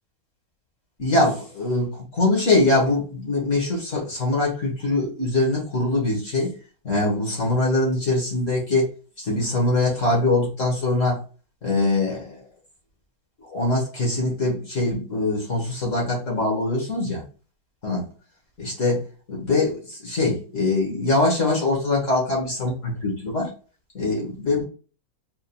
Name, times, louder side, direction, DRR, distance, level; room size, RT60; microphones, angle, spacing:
voice 1, 1.0-6.5 6.8-8.9 9.2-11.2 11.6-12.4 13.5-17.2 17.8-18.0 18.6-23.5 23.9-24.6, left 2 dB, 45° left, -1 dB, 1.6 m, -23 dB
4.2 x 3.6 x 2.2 m, 0.36 s
omnidirectional pair, 2.0 m